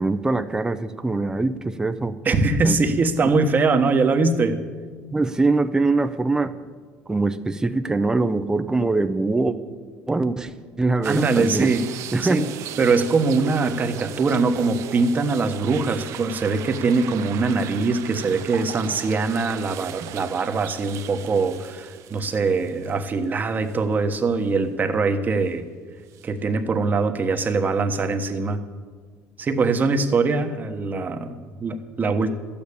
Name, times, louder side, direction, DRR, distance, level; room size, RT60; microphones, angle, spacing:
voice 1, 0.0-2.2 2.6-2.8 5.1-6.5 7.1-9.6 10.1-11.8 12.1-12.4, right 3 dB, 10° right, 10 dB, 0.6 m, -23 dB
voice 2, 2.2-4.6 11.0-11.9 12.2-12.5 12.8-25.7 26.2-28.6 29.4-32.3, right 4 dB, 35° right, 7 dB, 1.2 m, -22 dB
sound 1, 11.0-23.2 23.7-23.8 26.1-26.3, right 12 dB, 65° right, 0.7 m, -37 dB
12.5 x 8.8 x 8.5 m, 1.5 s
supercardioid pair, 105°, 6 cm